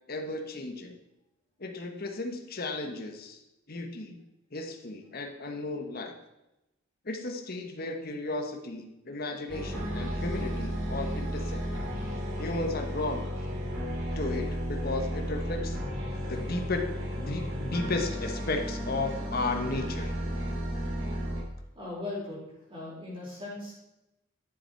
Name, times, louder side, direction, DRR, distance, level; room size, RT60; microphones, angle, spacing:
voice 1, 0.1-1.0 1.6-3.4 3.7-4.2 4.5-6.1 7.0-11.6 12.4-13.2 14.1-15.8 16.3-16.9 17.2-20.1, left 2 dB, 45° left, 4 dB, 1.2 m, -34 dB
sound 1, 9.5-21.4, equal, 75° right, 3.9 m, -33 dB
voice 2, 21.7-23.7, left 2 dB, 25° right, -6 dB, 4.2 m, -39 dB
11.0 x 7.3 x 4.6 m, 0.93 s
head